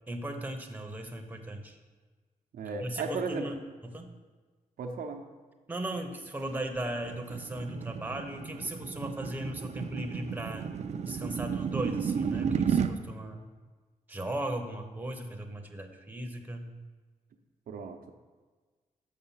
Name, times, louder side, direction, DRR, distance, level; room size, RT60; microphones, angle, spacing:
voice 1, 0.1-1.8 2.8-3.6 3.8-4.1 5.7-10.6 11.1-13.5 14.1-16.8, right 1 dB, 10° right, 4 dB, 0.8 m, -37 dB
voice 2, 2.5-3.5 4.8-5.2 17.7-18.0, right 4 dB, 85° right, 4 dB, 0.7 m, -35 dB
sound 1, 6.5-12.9, right 6 dB, 50° right, 0.5 m, -33 dB
6.6 x 5.5 x 5.6 m, 1.4 s
cardioid pair, 95°, 15 cm